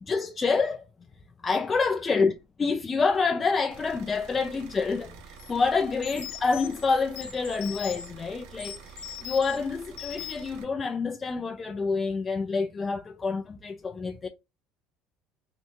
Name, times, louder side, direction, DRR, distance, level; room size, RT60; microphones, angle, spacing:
voice 1, 0.0-0.9 1.4-2.3 2.6-14.3, left 4 dB, 20° left, 0.3 m, -27 dB
sound 1, 3.7-10.6, right 7 dB, 75° right, 0.7 m, -48 dB
sound 2, 5.4-5.5 6.0-8.1 8.6-9.6 10.0-10.5, left 10 dB, 90° left, 0.7 m, -40 dB
3.3 x 2.6 x 2.8 m
cardioid pair, 125°, 0 cm